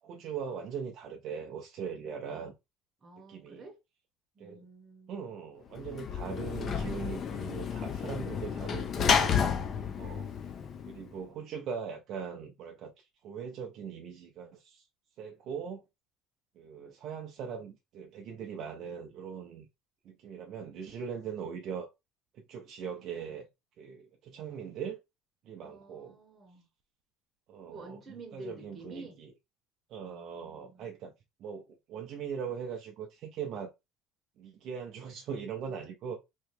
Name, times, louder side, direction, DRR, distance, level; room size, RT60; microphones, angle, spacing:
voice 1, 0.0-2.5 3.2-3.6 4.4-4.7 5.1-9.3 10.0-10.3 10.9-14.9 15.2-15.8 16.6-19.7 20.0-21.9 22.3-23.5 23.8-25.0 25.4-26.2 27.5-29.3 29.9-31.1 31.4-33.7 34.4-36.2, right 7 dB, 45° right, 0.5 m, -40 dB
voice 2, 3.0-3.8 4.3-5.2 25.6-26.6 27.7-29.2 30.0-31.0, right 2 dB, 20° right, 1.1 m, -49 dB
Sliding door / Slam, 5.8-11.2, left 7 dB, 30° left, 0.5 m, -31 dB
3.1 x 2.9 x 3.2 m
cardioid pair, 165°, 0 cm